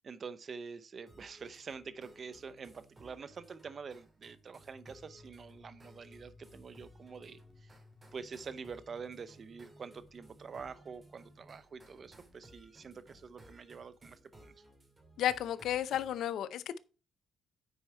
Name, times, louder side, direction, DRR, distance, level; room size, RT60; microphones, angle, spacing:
voice 1, 0.0-7.8 8.1-14.5, right 5 dB, 45° right, 0.7 m, -46 dB
sound 1, 1.1-16.2, right 1 dB, 25° right, 2.6 m, -60 dB
sound 2, 4.7-11.6, left 2 dB, 35° left, 2.2 m, -60 dB
voice 2, 15.2-16.8, left 11 dB, 75° left, 0.6 m, -33 dB
9.2 x 4.8 x 4.3 m
cardioid pair, 90°, 0 cm